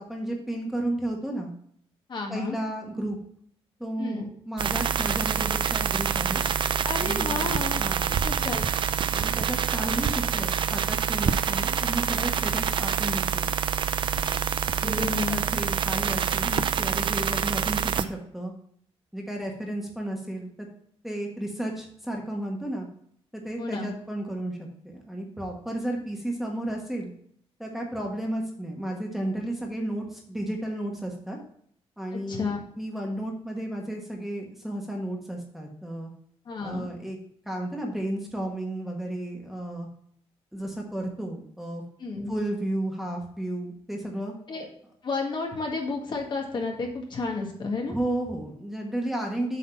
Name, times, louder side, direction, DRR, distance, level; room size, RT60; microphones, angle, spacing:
voice 1, 0.0-1.5 2.3-3.2 3.8-6.4 7.0-7.4 7.8-8.1 9.1-13.5 14.8-18.5 19.1-20.7 21.0-22.9 23.3-27.1 27.6-31.4 32.0-36.1 36.6-37.2 37.4-39.9 40.5-41.8 42.3-44.3 47.9-49.6, right 1 dB, ahead, 0 dB, 1.5 m, -33 dB
voice 2, 2.1-2.6 4.0-4.3 6.8-7.8 8.1-8.7 14.8-15.4 16.4-16.6 23.6-23.9 32.3-32.6 36.5-36.9 42.0-42.3 44.5-44.7 45.0-48.0, left 3 dB, 45° left, 1 dB, 1.8 m, -31 dB
sound 1, 4.6-18.0, right 8 dB, 50° right, 0.5 m, -26 dB
8.1 x 4.2 x 5.6 m, 0.64 s
cardioid pair, 140°, 11 cm